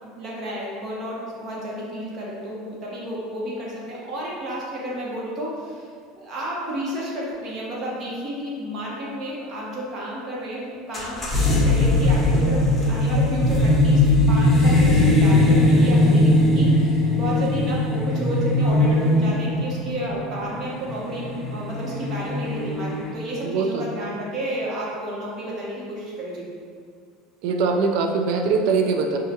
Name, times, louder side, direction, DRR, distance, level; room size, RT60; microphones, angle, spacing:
voice 1, 0.0-5.9 6.2-26.5, equal, 45° right, -5 dB, 1.2 m, -31 dB
sound 1, 10.9-23.1, left 1 dB, 25° left, 0.8 m, -19 dB
voice 2, 23.4-24.1 27.4-29.2, right 4 dB, 70° right, 4 dB, 0.4 m, -22 dB
5.5 x 2.4 x 2.8 m, 2.1 s
supercardioid pair, 110°, 0 cm